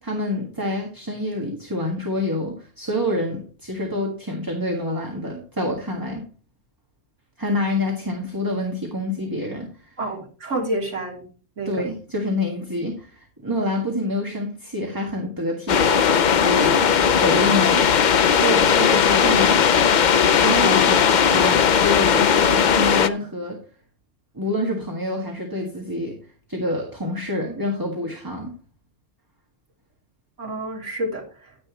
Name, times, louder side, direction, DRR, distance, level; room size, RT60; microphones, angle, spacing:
voice 1, 0.0-6.2 7.4-9.9 11.6-18.0 18.4-19.7 20.4-23.6 24.3-26.2 26.5-28.5, left 1 dB, 15° right, 1 dB, 1.7 m, -27 dB
voice 2, 10.0-11.2 11.6-11.8 30.4-31.2, right 1 dB, 70° right, -2 dB, 3.3 m, -28 dB
sound 1, 15.7-23.1, left 7 dB, 50° left, 0.6 m, -17 dB
10.5 x 10.0 x 3.0 m, 0.38 s
omnidirectional pair, 1.3 m